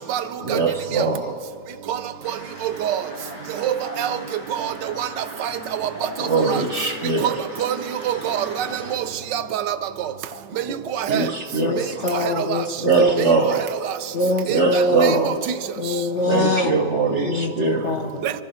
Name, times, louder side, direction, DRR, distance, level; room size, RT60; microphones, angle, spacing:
voice 1, 0.4-1.4 3.8-4.0 6.2-7.4 10.3-10.4 10.8-12.1 12.8-13.7 14.5-15.4 16.3-17.9, right 4 dB, 50° right, 0.9 m, -22 dB
sound 1, 2.2-9.0, equal, 85° left, 4.9 m, -39 dB
voice 2, 3.6-4.2 4.6-4.7 5.0-5.1 5.4-5.5 6.5-6.6 7.2-7.3 7.6-7.8 8.1-9.0 9.3-9.8 11.0-11.2 12.4-12.5 14.5-15.1 15.5-15.6 18.2-18.3, right 10 dB, 75° right, 1.3 m, -25 dB
voice 3, 11.6-13.3 14.1-15.3 15.8-16.9 17.2-18.1, left 1 dB, 55° left, 0.8 m, -23 dB
23.5 x 14.0 x 4.3 m
omnidirectional pair, 2.1 m